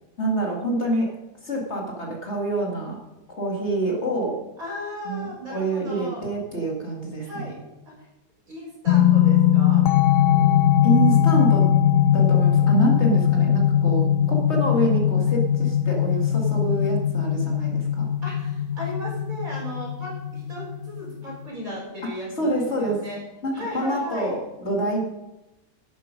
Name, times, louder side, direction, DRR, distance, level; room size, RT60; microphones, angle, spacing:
voice 1, 0.2-1.1 1.4-3.0 3.3-4.4 5.1-7.5 10.8-11.7 12.1-18.1 22.4-23.0 23.4-25.0, right 2 dB, 40° left, -1 dB, 2.3 m, -26 dB
voice 2, 4.6-6.2 7.2-7.5 8.0-8.1 8.5-9.8 18.2-23.2 23.5-24.4, equal, 55° right, -4 dB, 5.1 m, -36 dB
sound 1, 8.9-21.5, left 10 dB, 65° left, 0.8 m, -20 dB
11.5 x 9.0 x 5.2 m, 0.97 s
omnidirectional pair, 1.7 m